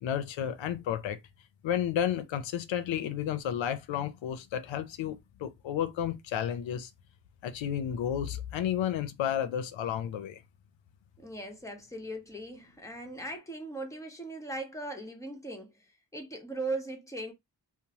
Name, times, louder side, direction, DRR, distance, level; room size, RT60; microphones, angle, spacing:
voice 1, 0.0-1.2 1.6-6.9 7.4-10.4, left 9 dB, 90° left, 0.5 m, -32 dB
voice 2, 11.2-15.7 16.1-17.3, right 2 dB, 5° left, 1.0 m, -38 dB
2.9 x 2.0 x 2.7 m
cardioid pair, 50°, 44 cm